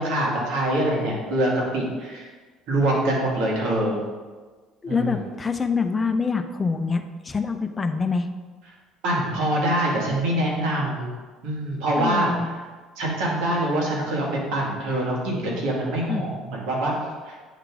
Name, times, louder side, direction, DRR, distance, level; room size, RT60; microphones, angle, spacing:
voice 1, 0.0-2.3 2.7-4.0 4.9-5.3 9.0-11.1 11.4-12.5 13.0-16.9 17.3-17.4, right 1 dB, 75° right, -3 dB, 2.3 m, -24 dB
voice 2, 4.8-8.3 12.0-12.5 16.1-16.3, left 4 dB, 25° left, 6 dB, 0.6 m, -25 dB
8.3 x 3.7 x 4.8 m, 1.4 s
supercardioid pair, 95°, 0 cm